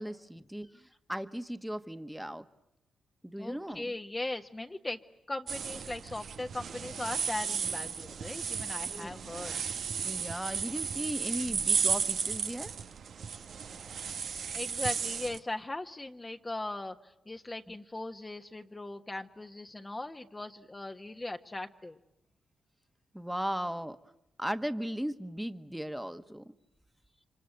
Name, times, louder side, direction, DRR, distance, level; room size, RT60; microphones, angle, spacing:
voice 1, 0.0-2.4 3.2-3.9 8.9-9.1 10.0-12.7 17.7-17.8 23.1-24.0 24.4-26.4, equal, 5° right, 9 dB, 1.5 m, -37 dB
voice 2, 3.4-5.0 5.3-9.6 14.5-22.0, left 2 dB, 25° left, 5 dB, 1.4 m, -39 dB
sound 1, 5.5-15.4, right 6 dB, 70° right, 1.1 m, -34 dB
29.0 x 25.0 x 7.9 m, 0.87 s
supercardioid pair, 55°, 0 cm